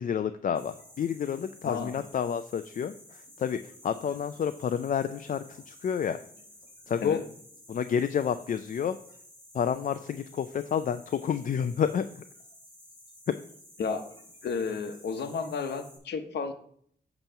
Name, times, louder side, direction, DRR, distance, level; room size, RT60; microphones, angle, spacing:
voice 1, 0.0-6.2 6.9-7.2 7.7-9.0 9.5-12.2 13.3-13.4, left 7 dB, 50° left, 11 dB, 0.4 m, -29 dB
sound 1, 0.5-16.0, left 1 dB, 25° left, 3.4 m, -53 dB
voice 2, 1.6-2.0 7.0-7.2 13.8-14.1 14.4-16.5, left 5 dB, 80° left, 8 dB, 0.8 m, -32 dB
8.8 x 3.0 x 5.6 m, 0.62 s
cardioid pair, 70°, 17 cm